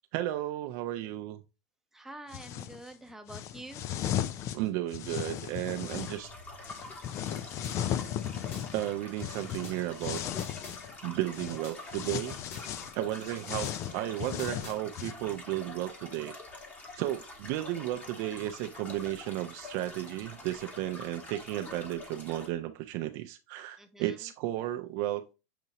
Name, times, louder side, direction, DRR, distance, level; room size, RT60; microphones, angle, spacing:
voice 1, 0.1-1.4 4.5-6.3 8.7-10.2 11.0-12.3 12.9-16.3 16.9-25.2, right 14 dB, 55° right, 7 dB, 0.5 m, -34 dB
voice 2, 1.9-3.8 23.8-24.2, right 1 dB, 5° right, 6 dB, 0.7 m, -47 dB
sound 1, 2.3-2.8 3.3-6.2 6.6-10.9 11.3-11.6 11.9-15.1, left 10 dB, 40° left, 0.4 m, -36 dB
sound 2, 5.3-22.5, left 2 dB, 20° left, 1.2 m, -47 dB
sound 3, 7.6-8.7 9.6-10.8 11.6-12.7 13.6-14.8, left 4 dB, 60° left, 2.9 m, -50 dB
6.6 x 2.7 x 2.9 m, 0.29 s
supercardioid pair, 125°, 8 cm